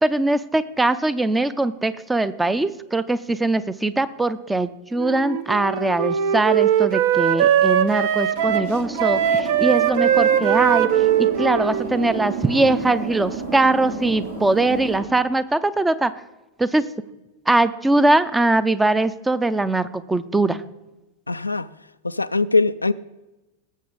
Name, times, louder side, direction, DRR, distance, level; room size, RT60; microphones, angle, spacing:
voice 1, 0.0-16.1 16.6-16.8 17.5-20.6, right 2 dB, 10° right, 14 dB, 0.5 m, -21 dB
Wind instrument woodwind instrument, 5.0-13.0, right 9 dB, 50° right, 0.7 m, -20 dB
sound 1, 8.4-15.0, right 3 dB, 80° right, 3.7 m, -32 dB
voice 2, 21.3-21.7 22.0-22.9, left 3 dB, 80° left, 12 dB, 0.3 m, -21 dB
18.5 x 7.6 x 4.0 m, 1.0 s
figure-of-eight pair, 90°, 0 cm